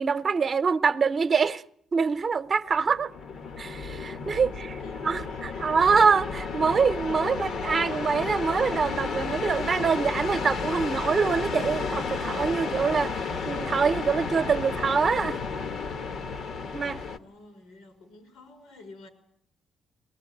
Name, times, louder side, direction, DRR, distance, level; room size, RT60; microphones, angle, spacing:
voice 1, 0.0-1.6 1.9-3.1 3.6-4.8 5.0-15.4 16.7-17.0, right 5 dB, 45° right, 0.9 m, -25 dB
sound 1, 2.7-17.2, left 5 dB, 65° left, 1.3 m, -32 dB
voice 2, 4.3-5.7 17.0-19.1, left 2 dB, 85° left, 5.7 m, -50 dB
22.5 x 19.0 x 9.2 m
cardioid pair, 90°, 0 cm